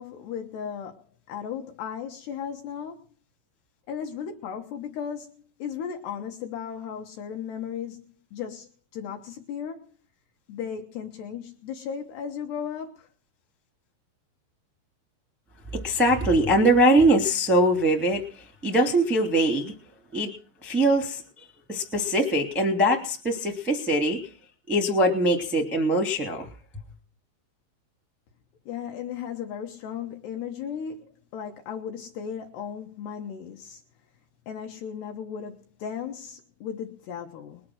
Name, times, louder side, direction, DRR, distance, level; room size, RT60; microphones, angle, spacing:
voice 1, 0.0-3.0 3.9-9.9 10.5-13.1 28.7-33.8 34.5-37.6, left 8 dB, 75° left, 2.5 m, -36 dB
voice 2, 15.7-18.2 18.6-19.7 20.1-20.3 20.6-21.2 21.7-24.2 24.7-26.5, right 1 dB, ahead, 0.6 m, -22 dB
21.0 x 7.6 x 6.3 m
omnidirectional pair, 5.9 m